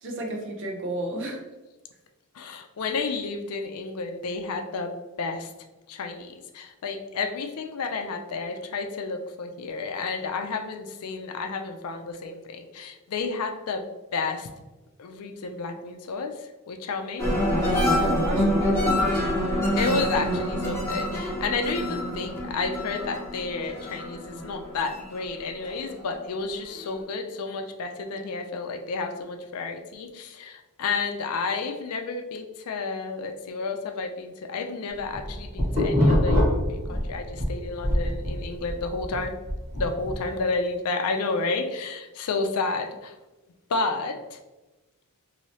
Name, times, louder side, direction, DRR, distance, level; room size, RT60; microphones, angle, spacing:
voice 1, 0.0-1.4 17.7-19.4, right 1 dB, 60° right, 1 dB, 0.7 m, -32 dB
voice 2, 2.3-5.5 5.9-14.5 15.0-17.3 17.6-18.0 19.8-39.3 39.8-43.2 43.7-44.4, left 3 dB, 85° left, 6 dB, 0.4 m, -31 dB
sound 1, 17.2-26.0 26.4-26.9, left 1 dB, 10° left, 0.8 m, -26 dB
sound 2, 35.0-37.5 37.8-40.2, left 1 dB, 30° right, 1.3 m, -24 dB
3.1 x 2.7 x 2.8 m, 1.1 s
head